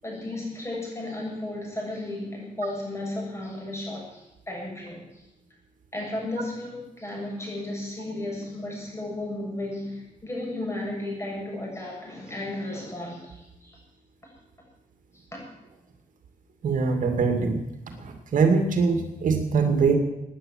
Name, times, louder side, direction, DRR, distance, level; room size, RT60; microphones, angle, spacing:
voice 1, 0.0-5.2 5.9-13.8 15.3-15.4, left 1 dB, 20° left, -2 dB, 8.0 m, -34 dB
voice 2, 16.6-17.6 18.0-20.0, right 5 dB, 70° right, 5 dB, 2.4 m, -22 dB
18.0 x 9.9 x 7.7 m, 0.92 s
cardioid pair, 100°, 14 cm